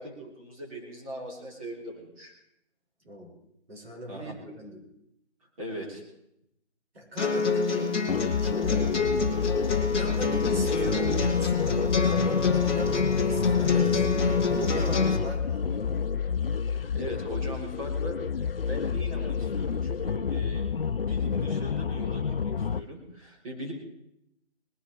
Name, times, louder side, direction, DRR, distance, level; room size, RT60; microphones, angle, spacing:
voice 1, 0.0-2.3 4.1-4.3 5.6-6.0 9.7-9.8 16.7-20.7 21.0-23.7, right 1 dB, 30° right, -2 dB, 3.6 m, -40 dB
voice 2, 3.7-4.9 6.9-8.0 8.4-8.9 9.8-16.1, right 1 dB, 60° right, -2 dB, 6.5 m, -39 dB
sound 1, 7.2-15.2, left 4 dB, 10° left, 0.9 m, -26 dB
sound 2, 8.1-22.8, left 6 dB, 55° left, 0.5 m, -29 dB
20.0 x 10.5 x 4.7 m, 0.81 s
figure-of-eight pair, 155°, 35 cm